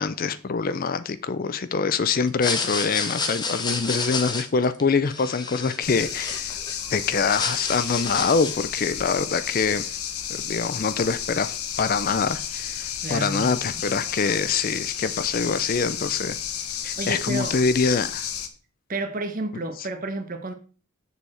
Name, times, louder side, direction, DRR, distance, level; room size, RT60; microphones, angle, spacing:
voice 1, 0.0-6.6 6.9-9.9 10.4-16.4 16.8-18.3, left 5 dB, 40° left, 0.4 m, -25 dB
sound 1, 2.3-6.7 7.1-8.7, left 4 dB, 20° left, 0.8 m, -30 dB
sound 2, 5.8-18.5, left 9 dB, 80° left, 1.0 m, -32 dB
voice 2, 13.0-13.8 17.0-17.6 18.9-20.5, right 2 dB, 40° right, 1.0 m, -31 dB
6.9 x 6.8 x 4.3 m
head